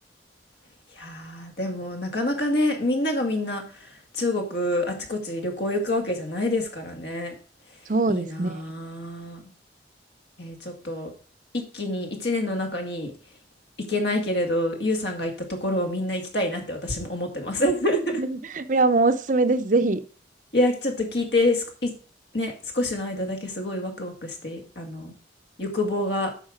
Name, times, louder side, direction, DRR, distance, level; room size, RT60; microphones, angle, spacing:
voice 1, 1.0-3.6 4.1-7.3 8.1-9.4 10.4-11.1 11.7-13.1 13.9-15.3 15.6-18.0 20.5-21.9 22.3-25.1 25.6-26.3, left 1 dB, 65° left, 2.3 m, -27 dB
voice 2, 7.9-8.6 18.2-20.0, right 3 dB, 45° right, 0.6 m, -22 dB
8.9 x 5.9 x 5.2 m
head